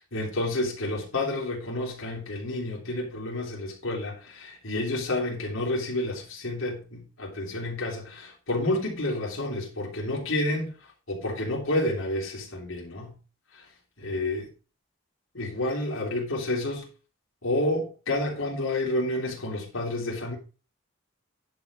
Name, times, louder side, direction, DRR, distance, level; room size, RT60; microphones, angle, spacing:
voice 1, 0.1-13.2 13.5-13.7 14.0-14.5 15.3-16.9 17.4-20.4, left 1 dB, 70° left, 3.2 m, -30 dB
10.5 x 5.1 x 5.4 m
head